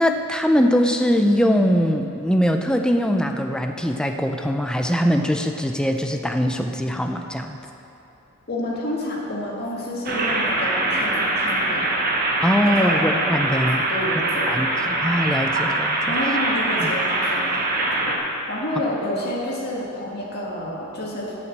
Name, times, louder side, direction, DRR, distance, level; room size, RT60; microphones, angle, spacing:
voice 1, 0.0-7.6 12.4-13.8 14.4-16.2 16.8-16.9, equal, 5° left, 4 dB, 0.4 m, -22 dB
voice 2, 8.5-12.0 12.6-13.1 13.5-13.6 13.9-14.5 16.1-18.2 18.5-21.4, left 1 dB, 50° left, -4 dB, 1.7 m, -29 dB
sound 1, 10.1-18.2, right 2 dB, 45° right, 1.0 m, -23 dB
8.0 x 5.9 x 7.5 m, 2.9 s
head